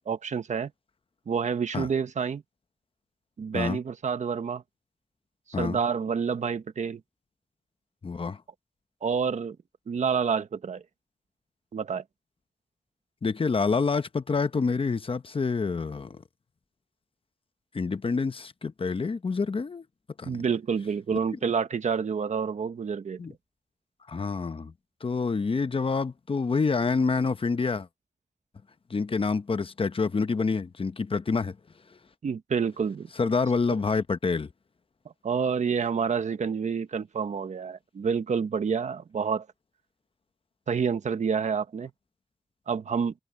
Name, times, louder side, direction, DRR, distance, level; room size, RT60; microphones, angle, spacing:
voice 1, 0.1-0.7 1.3-2.4 3.4-4.6 5.6-7.0 9.0-9.6 9.9-10.8 11.7-12.0 20.2-23.2 32.2-33.1 35.2-39.5 40.7-41.9 42.7-43.1, right 6 dB, 75° right, 1.3 m, -28 dB
voice 2, 8.0-8.4 13.2-16.2 17.7-19.8 20.2-20.4 23.2-23.3 24.1-24.7 25.0-27.9 28.9-31.6 33.2-34.5, left 4 dB, 45° left, 0.9 m, -27 dB
cardioid pair, 65°, 12 cm